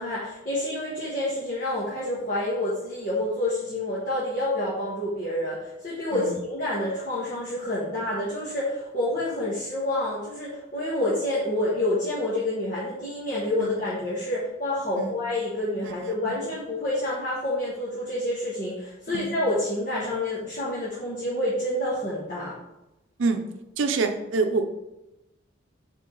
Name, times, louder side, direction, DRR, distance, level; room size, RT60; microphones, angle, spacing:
voice 1, 0.0-22.5, left 1 dB, 45° left, -9 dB, 1.4 m, -28 dB
voice 2, 23.8-24.7, right 3 dB, 80° right, 6 dB, 0.6 m, -26 dB
6.6 x 3.7 x 3.8 m, 0.92 s
head